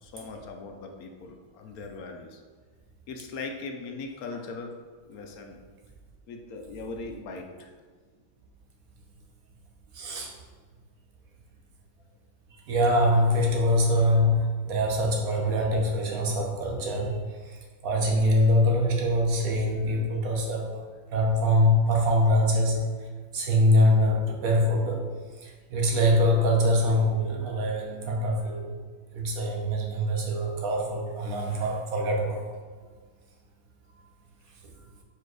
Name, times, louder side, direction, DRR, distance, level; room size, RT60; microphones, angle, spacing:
voice 1, 0.0-2.4 3.1-4.7 5.0-5.6 6.3-7.8 27.3-27.5 27.7-27.8, left 3 dB, 75° left, 3 dB, 1.2 m, -39 dB
voice 2, 9.9-10.3 12.5-20.8 21.1-22.8 23.3-25.1 25.4-28.8 29.1-32.4 34.6-34.7, equal, 65° right, 0 dB, 1.4 m, -24 dB
4.9 x 4.7 x 4.7 m, 1.5 s
omnidirectional pair, 1.6 m